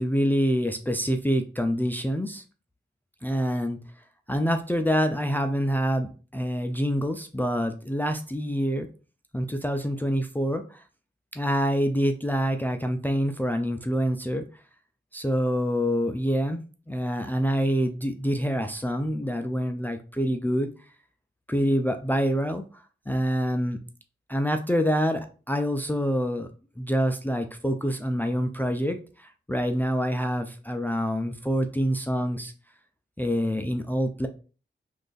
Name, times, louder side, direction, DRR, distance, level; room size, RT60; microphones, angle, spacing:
voice 1, 0.0-2.4 3.2-3.8 4.3-8.9 9.3-10.8 11.3-14.4 15.1-20.7 21.5-22.6 23.1-23.8 24.3-26.5 26.8-32.5 33.2-34.3, equal, 10° left, 6 dB, 0.4 m, -26 dB
3.1 x 2.5 x 3.8 m, 0.36 s
wide cardioid pair, 100°, 20 cm